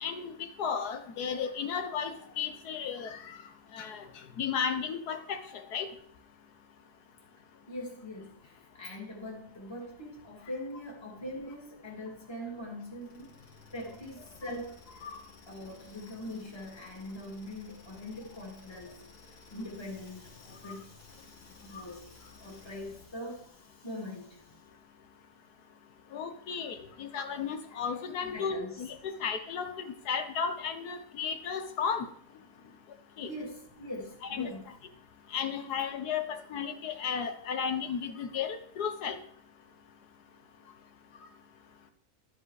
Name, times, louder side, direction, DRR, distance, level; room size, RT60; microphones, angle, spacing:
voice 1, 0.0-3.4 3.7-4.0 4.4-5.9 15.0-15.2 20.6-20.8 26.1-32.1 33.2-33.3 34.2-34.5 35.3-39.2, left 6 dB, 80° left, 8 dB, 1.5 m, -34 dB
voice 2, 7.7-13.3 13.7-14.8 15.5-19.0 19.5-24.6 28.2-28.8 33.2-34.7, left 1 dB, 15° left, -1 dB, 2.1 m, -42 dB
sound 1, 13.0-23.2, left 3 dB, 50° left, 2.2 m, -56 dB
12.5 x 5.5 x 4.8 m, 0.63 s
omnidirectional pair, 1.7 m